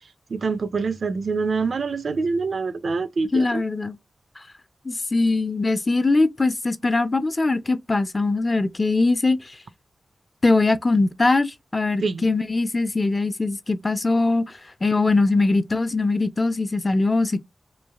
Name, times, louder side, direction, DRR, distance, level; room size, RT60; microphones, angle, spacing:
voice 1, 0.3-3.6 12.0-12.3, right 4 dB, 65° right, 0.4 m, -25 dB
voice 2, 3.3-4.0 4.8-9.6 10.4-17.4, left 3 dB, 30° left, 0.4 m, -21 dB
3.1 x 2.4 x 2.2 m
cardioid pair, 75°, 0 cm